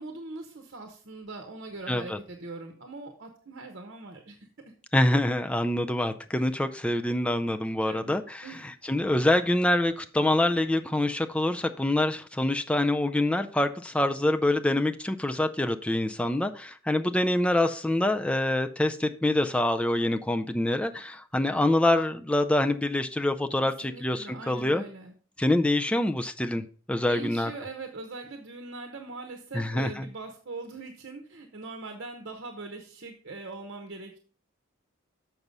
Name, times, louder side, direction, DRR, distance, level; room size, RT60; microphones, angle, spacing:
voice 1, 0.0-4.5 7.8-8.7 23.6-25.1 27.1-34.2, right 3 dB, 55° right, 5 dB, 1.0 m, -41 dB
voice 2, 1.9-2.2 4.9-8.5 8.8-24.8 25.4-27.5 29.5-30.1, left 1 dB, 5° left, 7 dB, 0.4 m, -26 dB
6.7 x 6.0 x 5.4 m, 0.43 s
head